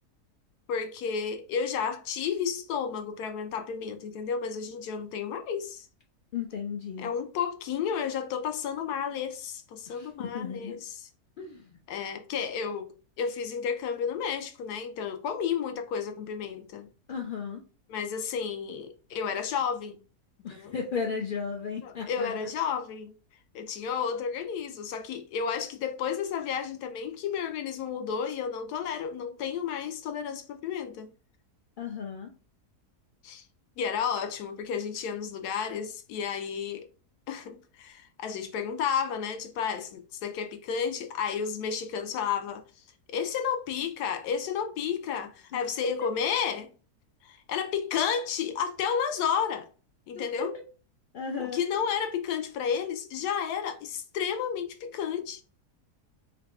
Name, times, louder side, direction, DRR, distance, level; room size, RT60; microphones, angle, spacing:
voice 1, 0.7-5.9 7.0-11.1 11.9-16.9 17.9-20.0 20.5-20.7 21.8-23.1 23.5-31.1 33.2-33.4 33.8-36.9 37.3-42.6 43.1-46.7 47.2-49.7 50.1-50.5 51.4-55.4, left 7 dB, 85° left, 1.2 m, -32 dB
voice 2, 6.3-7.1 9.9-10.8 11.4-11.8 17.1-17.6 20.4-22.4 31.8-32.3 50.1-50.5 51.1-51.6, left 5 dB, 65° left, 0.5 m, -35 dB
3.9 x 2.3 x 3.5 m
omnidirectional pair, 1.7 m